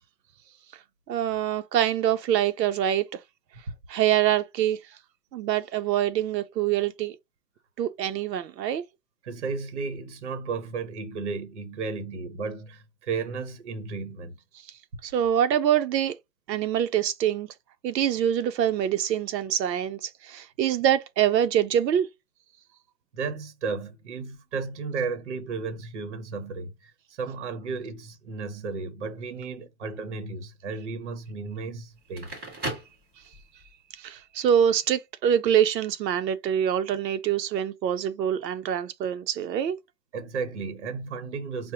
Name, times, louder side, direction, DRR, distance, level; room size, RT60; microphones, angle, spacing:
voice 1, 1.1-3.2 3.9-4.8 5.3-7.2 7.8-8.8 15.0-16.1 16.5-17.5 17.8-22.1 33.9-39.8, right 10 dB, 85° right, 0.6 m, -25 dB
voice 2, 9.2-14.4 23.1-32.3 40.1-41.7, right 4 dB, 45° right, 0.8 m, -34 dB
Crackle, 32.0-33.7, right 1 dB, 10° right, 0.6 m, -36 dB
4.8 x 2.1 x 2.8 m
hypercardioid pair, 170°, 50 cm